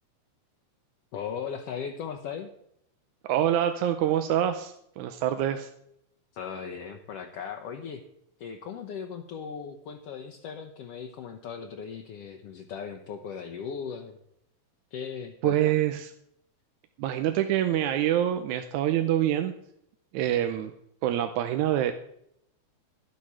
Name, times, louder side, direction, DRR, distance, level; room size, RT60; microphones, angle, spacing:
voice 1, 1.1-2.5 6.3-8.0 8.4-14.2 14.9-15.8, left 7 dB, 70° left, 3 dB, 1.7 m, -38 dB
voice 2, 3.3-5.7 15.4-16.1 17.0-19.5 20.1-20.7 21.0-21.9, right 11 dB, 90° right, 7 dB, 2.1 m, -26 dB
12.0 x 8.5 x 6.1 m, 0.74 s
omnidirectional pair, 3.4 m